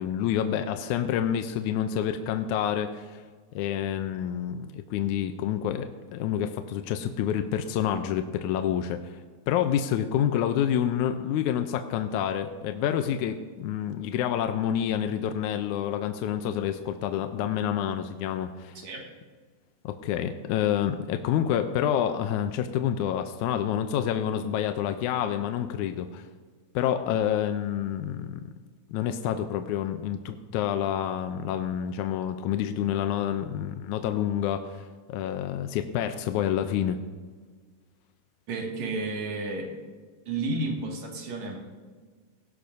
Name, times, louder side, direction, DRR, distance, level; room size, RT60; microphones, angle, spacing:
voice 1, 0.0-3.2 3.6-9.2 9.5-18.8 19.8-26.3 26.8-28.5 28.9-37.0, left 10 dB, 80° left, 7 dB, 2.0 m, -28 dB
voice 2, 38.5-39.7 40.3-41.6, right 2 dB, 65° right, 0 dB, 3.3 m, -31 dB
18.5 x 16.0 x 2.7 m, 1.5 s
omnidirectional pair, 3.6 m